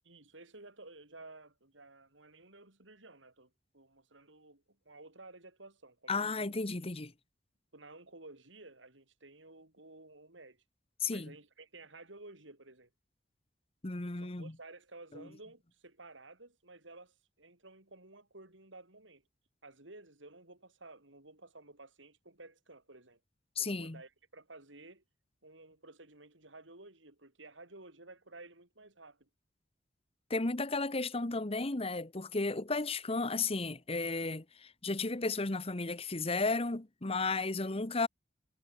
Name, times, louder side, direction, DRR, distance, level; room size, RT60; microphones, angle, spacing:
voice 1, 0.0-6.5 7.7-10.6 11.1-12.9 14.2-19.2 19.6-23.2 23.6-25.0 25.4-29.3, right 2 dB, 85° right, 6.1 m, -54 dB
voice 2, 6.1-7.1 11.0-11.3 13.8-14.5 23.6-24.0 30.3-38.1, left 3 dB, 30° left, 1.2 m, -34 dB
head